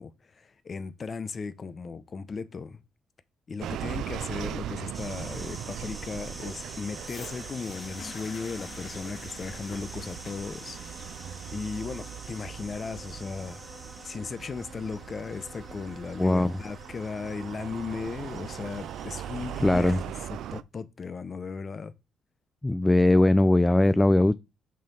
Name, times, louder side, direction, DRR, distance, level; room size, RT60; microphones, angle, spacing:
voice 1, 0.0-2.8 3.5-10.8 11.5-13.6 14.0-20.0 20.3-21.9, left 5 dB, 40° left, 0.7 m, -36 dB
sound 1, 3.6-20.6, right 11 dB, 80° right, 0.4 m, -40 dB
sound 2, 4.9-20.1, right 1 dB, 10° right, 1.7 m, -46 dB
sound 3, 7.0-15.0 15.8-15.9, left 5 dB, 60° left, 1.5 m, -49 dB
voice 2, 16.2-16.6 19.6-20.0 22.6-24.3, left 1 dB, 10° left, 0.4 m, -20 dB
6.3 x 4.4 x 5.3 m
cardioid pair, 90°, 0 cm